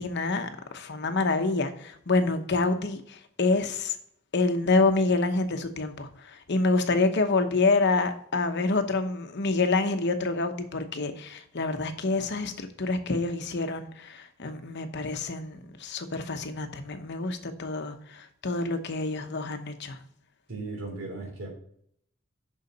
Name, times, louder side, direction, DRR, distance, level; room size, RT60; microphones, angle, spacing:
voice 1, 0.0-4.0 4.3-20.0, left 3 dB, 55° left, 8 dB, 0.9 m, -27 dB
voice 2, 20.5-21.5, right 3 dB, 70° right, 0 dB, 3.1 m, -36 dB
6.8 x 5.6 x 5.3 m, 0.66 s
head